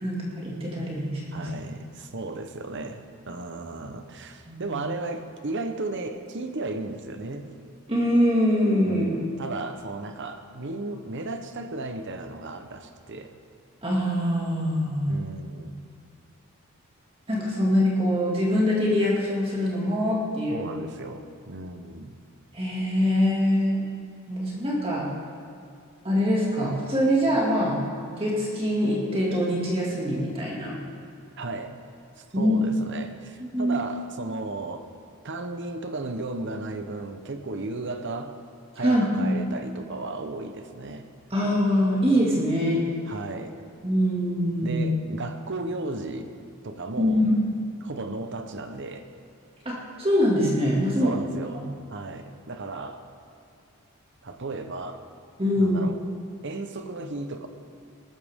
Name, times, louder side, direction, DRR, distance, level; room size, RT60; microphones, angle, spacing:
voice 1, 0.0-1.5 4.5-4.8 7.9-9.1 13.8-15.2 17.3-20.7 22.5-23.8 24.3-25.1 26.0-30.8 32.3-32.6 33.4-33.8 38.8-39.4 41.3-42.9 43.8-44.8 47.0-47.4 49.6-51.1 51.5-51.6 55.4-55.8, equal, 25° right, -4 dB, 2.3 m, -24 dB
voice 2, 1.3-7.6 8.9-13.4 15.1-15.8 20.5-22.2 31.4-31.8 32.2-34.9 35.2-38.3 38.8-41.1 43.1-43.5 44.6-46.3 46.6-47.2 47.8-49.1 51.0-53.0 54.2-55.0 55.6-56.0 56.4-57.5, right 2 dB, 55° right, 7 dB, 0.9 m, -35 dB
18.5 x 13.5 x 3.7 m, 2.4 s
head